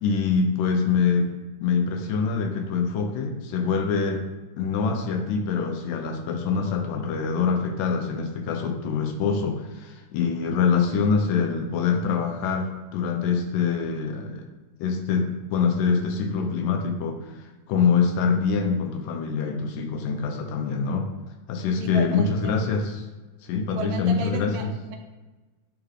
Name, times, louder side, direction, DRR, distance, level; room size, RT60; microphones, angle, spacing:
voice 1, 0.0-1.3 1.6-4.2 4.6-14.5 14.8-21.1 21.5-23.0 23.4-24.7, left 5 dB, 80° left, 4 dB, 2.1 m, -25 dB
voice 2, 21.8-22.6 23.7-25.0, right 4 dB, 85° right, 2 dB, 2.3 m, -33 dB
8.6 x 3.7 x 3.2 m, 1.2 s
omnidirectional pair, 4.1 m